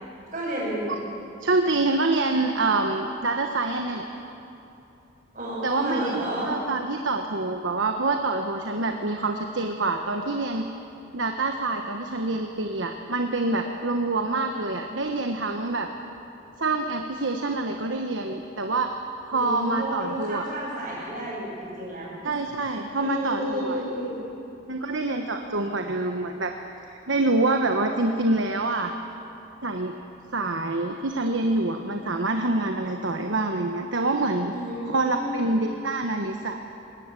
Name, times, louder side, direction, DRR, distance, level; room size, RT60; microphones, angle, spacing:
voice 1, 0.3-0.9 5.3-6.5 19.3-22.3 23.0-24.1 34.5-34.7 35.1-35.6, right 1 dB, 40° right, -10 dB, 6.5 m, -31 dB
voice 2, 1.4-4.1 5.6-10.7 11.1-15.9 16.6-19.0 19.3-20.5 22.2-23.8 24.7-26.5 26.9-28.9 29.6-29.9 30.3-34.5 34.9-36.6, right 2 dB, 75° right, 4 dB, 1.2 m, -26 dB
21.0 x 19.0 x 8.3 m, 2.8 s
head